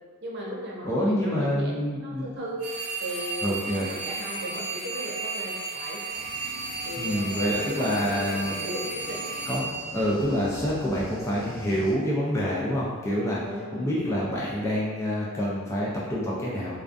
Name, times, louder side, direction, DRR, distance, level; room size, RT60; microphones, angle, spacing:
voice 1, 0.2-2.6 3.0-3.5 3.9-6.0 6.8-9.2 9.5-9.6 13.4-13.9, equal, 50° right, -3 dB, 0.5 m, -37 dB
voice 2, 0.8-2.3 3.4-3.9 7.0-8.6 9.5-9.7 9.9-13.4 13.7-16.8, equal, 15° left, -6 dB, 0.3 m, -27 dB
sound 1, 2.4-14.4, right 5 dB, 85° left, 0.9 m, -50 dB
sound 2, 2.6-10.8, right 3 dB, 80° right, 0.8 m, -34 dB
sound 3, 6.1-11.9, left 1 dB, 65° left, 0.6 m, -44 dB
2.3 x 2.3 x 2.4 m, 1.5 s
head